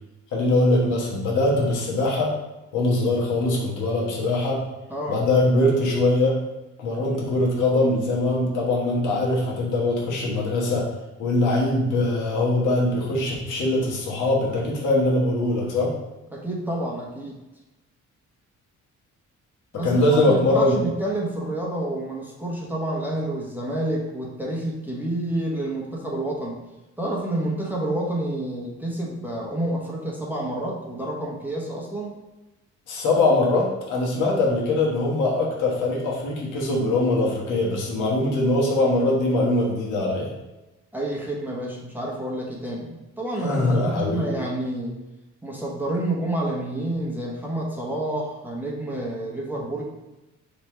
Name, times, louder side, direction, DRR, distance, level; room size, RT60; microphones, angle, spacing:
voice 1, 0.3-2.3 2.7-4.6 5.1-6.4 6.8-10.9 11.2-15.9 19.8-20.8 32.9-40.3 43.4-44.3, left 2 dB, 80° left, -3 dB, 1.2 m, -22 dB
voice 2, 4.9-5.2 16.3-17.4 19.7-26.6 27.0-32.1 40.9-45.0 45.4-49.8, right 1 dB, 5° right, -3 dB, 0.9 m, -29 dB
3.2 x 3.0 x 4.4 m, 1.0 s
cardioid pair, 90°, 30 cm